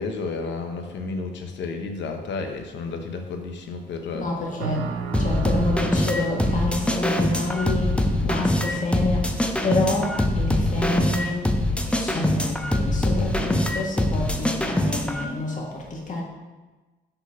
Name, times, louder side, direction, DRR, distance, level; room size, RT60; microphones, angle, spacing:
voice 1, 0.0-4.3, left 4 dB, 65° left, 5 dB, 1.0 m, -32 dB
voice 2, 4.1-9.3 9.6-11.4 11.9-16.2, left 2 dB, 40° left, -2 dB, 1.6 m, -28 dB
sound 1, 4.6-11.5, right 6 dB, 85° right, 0.6 m, -36 dB
sound 2, 5.1-15.2, left 1 dB, 5° left, 0.6 m, -23 dB
5.6 x 4.1 x 5.8 m, 1.2 s
cardioid pair, 90°, 20 cm